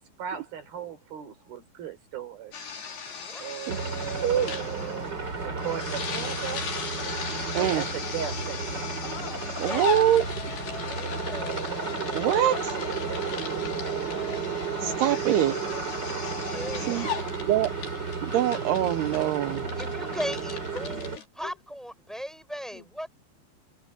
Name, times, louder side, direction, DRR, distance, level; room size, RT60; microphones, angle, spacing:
voice 1, 0.2-2.5 3.4-5.1 5.4-6.6 7.7-8.9 16.7-17.3, right 8 dB, 50° right, 5.8 m, -37 dB
sound 1, 2.5-21.2, left 7 dB, 55° left, 5.8 m, -38 dB
voice 2, 3.1-3.7 9.7-9.8 10.8-11.6 16.4-17.3 19.7-23.1, equal, ahead, 4.6 m, -38 dB
sound 2, 3.7-21.2, right 4 dB, 25° right, 3.8 m, -33 dB
voice 3, 4.2-4.5 7.5-7.8 9.6-10.3 12.1-12.6 14.8-15.5 16.9-17.1 17.4-17.7 18.2-19.6, right 11 dB, 75° right, 2.5 m, -24 dB
voice 4, 9.0-9.8 12.5-13.0 15.5-15.9 16.5-16.6 21.4-21.5 22.7-22.9, left 6 dB, 75° left, 6.4 m, -43 dB
omnidirectional pair, 5.6 m